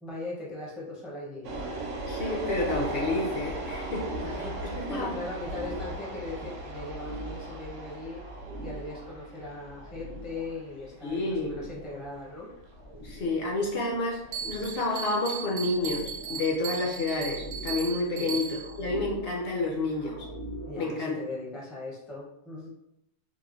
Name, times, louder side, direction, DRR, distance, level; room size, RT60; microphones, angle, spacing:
voice 1, 0.0-1.5 4.2-8.2 8.6-12.5 18.1-18.4 20.7-22.7, left 2 dB, ahead, -5 dB, 0.4 m, -39 dB
sound 1, 1.4-14.5, right 2 dB, 90° right, 0.9 m, -38 dB
sound 2, 1.6-20.7, equal, 85° left, 1.1 m, -44 dB
voice 2, 2.1-4.1 4.8-5.1 11.0-11.5 13.0-14.2 14.4-20.1 20.8-21.1, left 2 dB, 60° left, -2 dB, 0.7 m, -29 dB
Bell, 14.3-18.8, right 7 dB, 60° right, 0.7 m, -37 dB
3.0 x 2.0 x 2.4 m, 0.80 s
omnidirectional pair, 1.2 m